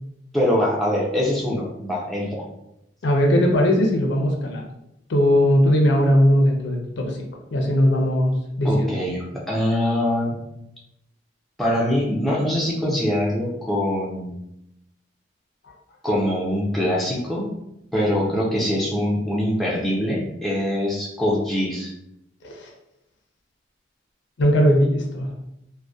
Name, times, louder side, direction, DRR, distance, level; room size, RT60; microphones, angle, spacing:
voice 1, 0.3-2.4 8.6-10.4 11.6-14.4 16.0-17.5 17.9-21.9, left 1 dB, ahead, -5 dB, 0.4 m, -23 dB
voice 2, 3.0-4.6 5.1-8.9 22.4-22.7 24.4-25.3, equal, 60° left, 1 dB, 0.4 m, -19 dB
2.6 x 2.1 x 2.2 m, 0.83 s
head